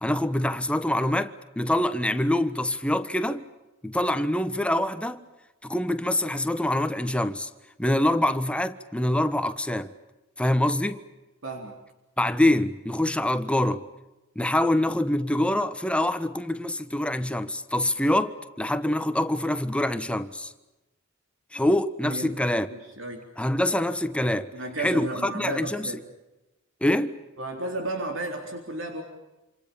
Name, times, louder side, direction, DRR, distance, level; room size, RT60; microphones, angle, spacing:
voice 1, 0.0-3.4 3.8-5.2 5.6-7.5 7.8-9.9 10.4-11.0 12.2-13.8 14.3-20.5 21.5-22.7 23.4-24.5 24.8-25.9 26.8-27.2, left 1 dB, 5° left, 1.3 m, -25 dB
voice 2, 11.4-11.8 22.0-22.4 22.7-23.2 24.5-26.0 27.4-29.0, right 2 dB, 70° right, 3.9 m, -33 dB
28.0 x 27.5 x 7.1 m
head